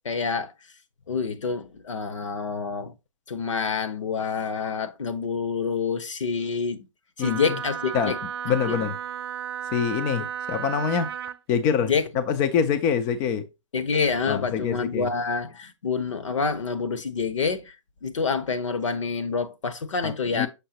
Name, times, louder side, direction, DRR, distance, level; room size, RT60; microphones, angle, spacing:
voice 1, 0.0-0.5 1.1-2.9 3.3-6.9 7.2-8.2 8.7-8.8 11.9-12.0 13.7-17.7 18.0-20.5, left 5 dB, 70° left, 1.1 m, -27 dB
voice 2, 7.2-7.6 7.9-8.1 8.4-9.0 9.7-11.1 11.5-13.5 14.3-15.1 20.0-20.5, left 7 dB, 15° left, 0.3 m, -25 dB
Wind instrument woodwind instrument, 7.2-11.4, right 8 dB, 50° right, 0.4 m, -33 dB
6.6 x 5.5 x 2.8 m
hypercardioid pair, 145°, 17 cm